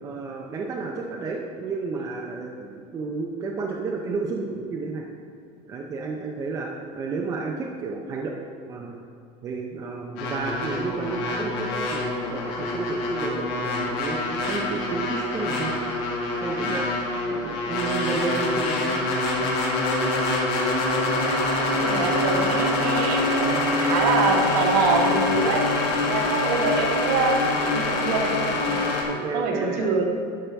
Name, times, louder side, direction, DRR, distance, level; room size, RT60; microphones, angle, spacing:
voice 1, 0.0-5.0 5.7-8.4 8.7-9.0 9.4-12.0 12.3-15.8 16.4-17.0 17.3-19.1 25.1-25.5 28.8-29.8, right 4 dB, 20° right, -1 dB, 0.5 m, -31 dB
sound 1, 10.2-29.0, left 2 dB, 70° left, 1.6 m, -25 dB
voice 2, 21.6-25.6 26.1-28.8 29.3-30.1, right 4 dB, 50° right, 1 dB, 1.2 m, -25 dB
11.5 x 5.5 x 3.4 m, 2.5 s
cardioid pair, 170°, 15 cm